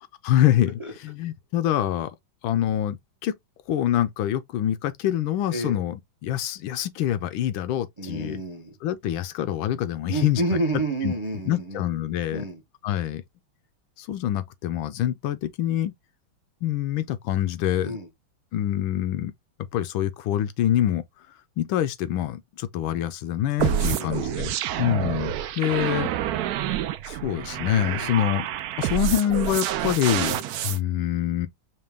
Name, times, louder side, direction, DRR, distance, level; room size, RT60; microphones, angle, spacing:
voice 1, 0.3-2.2 2.4-3.4 3.7-8.4 8.8-10.4 11.0-11.1 11.5-12.4 12.8-13.2 14.0-15.9 16.6-18.0 18.5-19.3 19.7-21.0 21.6-24.5 24.8-26.1 27.0-28.5 28.8-31.5, left 12 dB, 80° left, 1.4 m, -25 dB
voice 2, 5.5-5.8 8.0-8.8 10.1-11.8 12.3-12.6 17.8-18.1 23.6-24.5 27.7-28.5, right 2 dB, 45° right, 0.4 m, -30 dB
sound 1, 23.6-30.8, right 11 dB, 85° right, 0.8 m, -28 dB
5.4 x 2.2 x 3.4 m
omnidirectional pair, 2.2 m